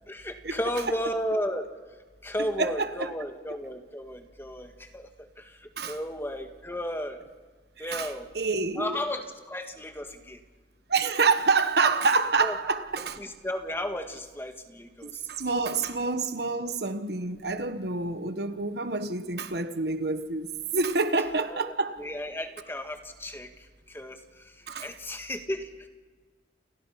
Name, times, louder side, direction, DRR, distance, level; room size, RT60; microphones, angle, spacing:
voice 1, 0.1-1.7 2.2-5.1 5.4-7.2 7.8-8.3 8.8-10.4 12.4-12.5 13.2-15.2 21.5-25.9, equal, 15° left, 1.8 m, -34 dB
voice 2, 2.4-3.1 5.8-6.0 7.8-9.0 10.9-13.2 15.0-22.0 24.7-24.9, right 4 dB, 60° right, 1.3 m, -27 dB
29.5 x 29.5 x 5.8 m
head